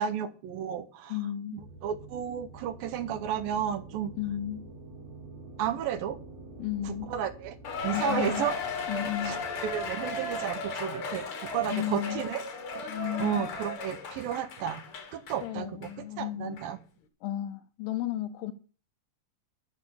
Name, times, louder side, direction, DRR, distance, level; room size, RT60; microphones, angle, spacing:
voice 1, 0.0-1.1 1.5-4.1 5.6-6.2 6.9-7.6 7.8-8.6 9.3-9.4 9.6-11.3 11.5-12.4 13.2-14.8 15.1-15.9 16.2-16.8, right 9 dB, 75° right, 2.6 m, -32 dB
voice 2, 1.1-1.7 4.2-4.7 6.6-7.2 7.9-8.5 8.9-9.4 11.7-12.3 12.9-13.5 15.4-16.6 17.2-18.5, left 12 dB, 75° left, 2.3 m, -34 dB
sound 1, 1.6-10.0, right 3 dB, 50° right, 2.8 m, -48 dB
Cheering, 7.6-15.4 15.8-15.9 16.6-16.7, left 3 dB, 55° left, 1.6 m, -35 dB
8.8 x 6.2 x 6.9 m
omnidirectional pair, 4.4 m